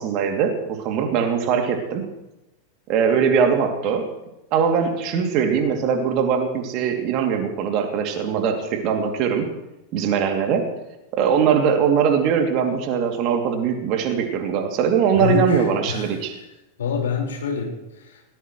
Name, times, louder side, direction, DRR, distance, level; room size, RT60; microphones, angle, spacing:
voice 1, 0.0-2.1 2.9-4.1 4.5-9.5 9.9-10.7 11.1-16.4, right 7 dB, 40° right, 4 dB, 2.7 m, -21 dB
voice 2, 15.1-16.1 16.8-18.3, left 6 dB, 65° left, 0 dB, 4.8 m, -26 dB
21.0 x 18.5 x 3.2 m, 0.94 s
figure-of-eight pair, 90°, 0 cm